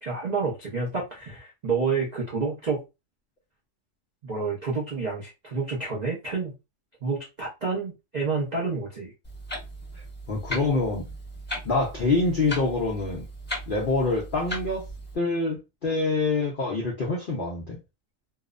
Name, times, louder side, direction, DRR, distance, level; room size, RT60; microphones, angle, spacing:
voice 1, 0.0-2.8 4.2-6.5 7.0-9.1, right 4 dB, 75° right, 0.4 m, -29 dB
Clock, 9.2-15.1, equal, 10° left, 0.9 m, -37 dB
voice 2, 10.3-11.0 11.6-13.2 13.7-14.9 15.1-17.8, left 3 dB, 70° left, 0.5 m, -26 dB
2.8 x 2.0 x 2.3 m
omnidirectional pair, 1.7 m